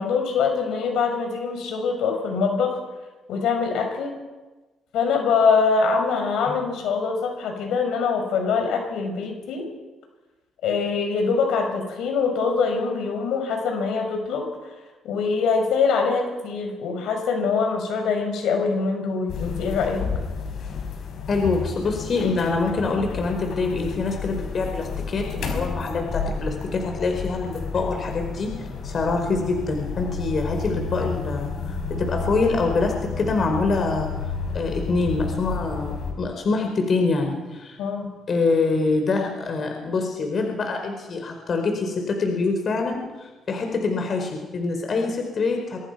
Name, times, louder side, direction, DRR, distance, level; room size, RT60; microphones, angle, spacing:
voice 1, 0.0-2.8 3.3-4.2 4.9-9.7 10.6-14.5 15.0-20.1 37.8-38.1, left 5 dB, 85° left, 3 dB, 6.5 m, -23 dB
sound 1, 19.3-36.1, left 5 dB, 65° left, 6.8 m, -31 dB
voice 2, 21.3-34.2 34.5-37.8 38.3-45.9, left 3 dB, 50° left, 3 dB, 4.9 m, -25 dB
25.0 x 23.5 x 5.9 m, 1.2 s
cardioid pair, 90°, 0 cm